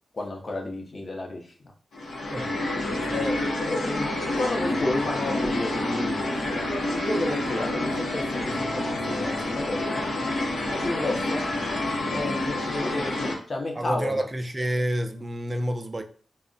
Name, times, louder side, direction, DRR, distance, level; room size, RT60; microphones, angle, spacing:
voice 1, 0.1-1.4 3.1-3.4 3.7-6.7 7.1-9.8 10.8-11.4 12.1-14.2, left 2 dB, 40° left, 1 dB, 0.6 m, -31 dB
sound 1, 1.9-13.4, left 1 dB, 80° left, 0.6 m, -28 dB
voice 2, 2.9-3.3 13.8-16.0, right 1 dB, 20° right, 6 dB, 0.3 m, -29 dB
2.3 x 2.0 x 3.7 m, 0.42 s
wide cardioid pair, 120°, 0 cm